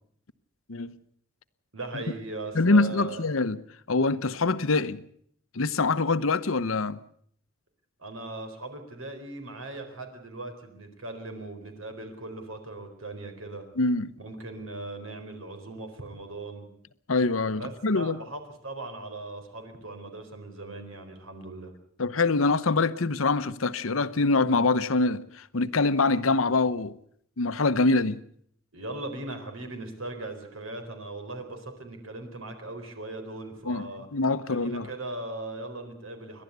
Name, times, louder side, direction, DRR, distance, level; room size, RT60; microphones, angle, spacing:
voice 1, 1.7-3.2 8.0-13.6 14.2-16.7 17.6-21.7 28.7-34.1 34.5-36.4, right 2 dB, 85° right, 4.3 m, -39 dB
voice 2, 2.5-3.6 3.9-5.0 5.5-7.0 13.8-14.1 17.1-18.2 22.0-27.0 27.4-28.2 33.6-34.9, left 3 dB, 80° left, 0.9 m, -24 dB
29.5 x 12.0 x 8.2 m
head